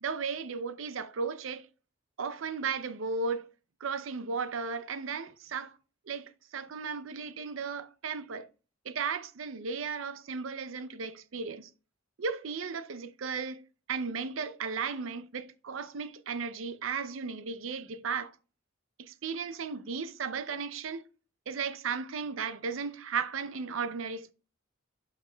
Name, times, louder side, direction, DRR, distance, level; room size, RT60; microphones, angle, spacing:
voice 1, 0.0-1.7 2.2-3.5 3.8-5.7 6.1-8.5 8.8-11.7 12.2-13.6 13.9-18.4 19.0-21.1 21.5-24.3, right 5 dB, 70° right, 0.5 m, -35 dB
11.5 x 5.7 x 2.2 m
head